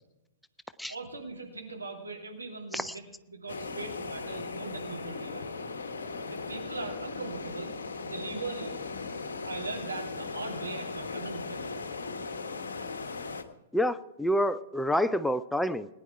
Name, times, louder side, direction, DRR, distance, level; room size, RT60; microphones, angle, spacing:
voice 1, 0.9-5.6 6.3-7.7 8.0-8.8 9.4-11.8, right 3 dB, 80° right, 0 dB, 3.0 m, -40 dB
sound 1, 3.5-13.4, left 4 dB, 65° left, 1.2 m, -38 dB
voice 2, 13.7-15.9, equal, ahead, 13 dB, 0.4 m, -28 dB
19.5 x 10.0 x 4.7 m, 0.98 s
figure-of-eight pair, 105°, 0 cm